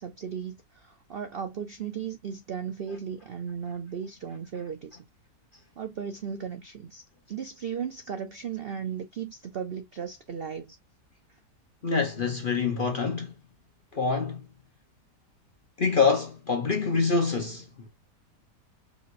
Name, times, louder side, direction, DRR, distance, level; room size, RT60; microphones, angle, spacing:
voice 1, 0.0-5.0 5.8-7.0 7.3-10.7, right 7 dB, 70° right, 0.5 m, -36 dB
voice 2, 11.8-13.3 13.9-14.5 15.8-17.9, left 4 dB, 45° left, 0.7 m, -26 dB
5.2 x 3.1 x 2.5 m
omnidirectional pair, 1.8 m